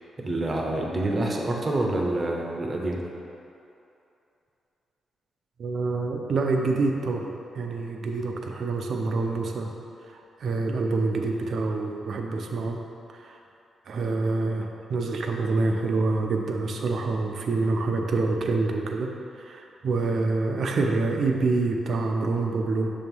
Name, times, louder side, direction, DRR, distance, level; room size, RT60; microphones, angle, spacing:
voice 1, 0.2-3.0, right 1 dB, 30° right, 0 dB, 0.8 m, -27 dB
voice 2, 5.6-9.7 10.1-12.8 13.1-13.4 13.9-22.9, right 3 dB, 60° right, 2 dB, 0.6 m, -26 dB
7.0 x 3.0 x 5.3 m, 2.7 s
cardioid pair, 100°, 0 cm